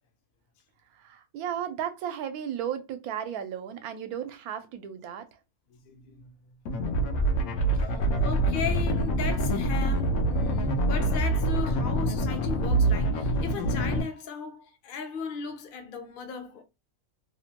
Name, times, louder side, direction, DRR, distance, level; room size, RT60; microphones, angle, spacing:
voice 1, 0.9-5.3, right 9 dB, 80° right, 1.1 m, -34 dB
voice 2, 5.7-6.3 7.7-16.6, left 5 dB, 55° left, 0.6 m, -37 dB
sound 1, 6.7-14.0, right 1 dB, 80° left, 1.1 m, -25 dB
3.0 x 2.1 x 2.8 m
omnidirectional pair, 1.5 m